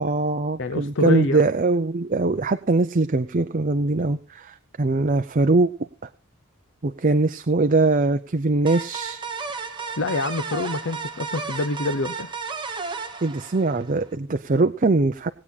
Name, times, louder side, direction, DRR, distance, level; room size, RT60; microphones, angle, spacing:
voice 1, 0.0-5.9 6.8-9.2 13.2-15.3, right 3 dB, 35° right, 8 dB, 0.6 m, -22 dB
voice 2, 0.6-1.4 10.0-12.3, left 2 dB, 55° left, 10 dB, 0.7 m, -26 dB
sound 1, 8.7-14.1, right 4 dB, 20° right, 1.3 m, -33 dB
19.0 x 8.6 x 4.1 m, 0.35 s
head